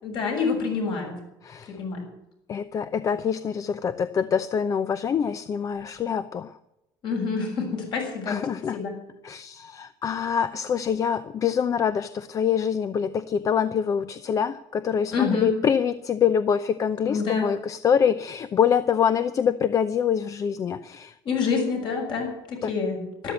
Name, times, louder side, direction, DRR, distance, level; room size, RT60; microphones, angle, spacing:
voice 1, 0.0-1.2 1.8-2.1 7.0-8.4 8.7-8.9 15.1-15.5 17.0-17.5 21.3-23.3, left 5 dB, 50° left, 1 dB, 6.9 m, -27 dB
voice 2, 2.5-6.5 8.3-8.8 9.2-21.1 22.6-22.7, left 7 dB, 35° left, 13 dB, 0.7 m, -25 dB
13.0 x 12.5 x 8.2 m, 0.86 s
cardioid pair, 140°, 10 cm